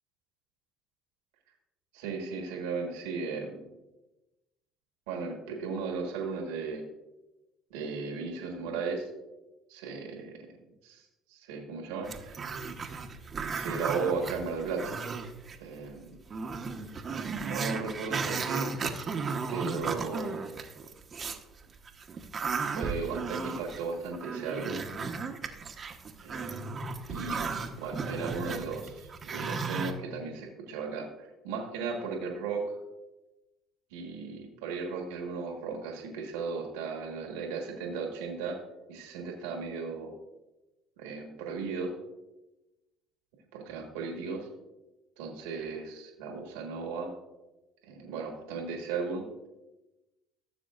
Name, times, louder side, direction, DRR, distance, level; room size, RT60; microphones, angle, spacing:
voice 1, 1.9-3.6 5.1-6.8 7.7-9.1 9.7-10.4 10.8-12.4 13.5-14.9 15.6-16.1 17.4-18.7 19.5-20.5 22.7-24.8 26.2-26.8 27.1-32.8 33.9-38.6 38.9-40.1 41.0-41.9 43.5-44.5 45.2-47.1 47.8-49.3, right 4 dB, 80° right, 2 dB, 1.5 m, -36 dB
Growling, 12.0-15.6 15.9-16.0 16.3-21.4 21.9-29.9, right 4 dB, 40° right, 1.0 m, -35 dB
15.0 x 6.9 x 2.5 m, 1.0 s
hypercardioid pair, 65°, 0 cm